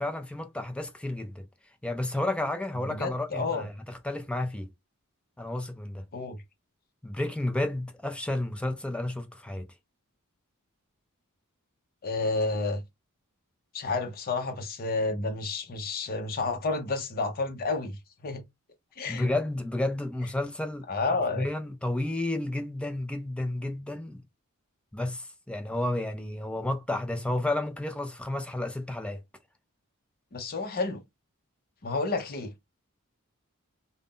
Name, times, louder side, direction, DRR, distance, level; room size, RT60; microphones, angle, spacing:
voice 1, 0.0-1.5 1.8-4.7 5.4-6.0 7.0-9.7 19.1-20.9 21.4-24.2 24.9-29.2, left 1 dB, 5° left, 0.4 m, -31 dB
voice 2, 2.9-3.7 6.1-6.4 12.0-12.8 13.7-18.0 18.2-18.4 19.0-19.3 20.9-21.5 30.3-31.0 31.8-32.5, left 3 dB, 45° left, 0.6 m, -30 dB
2.5 x 2.0 x 3.5 m
head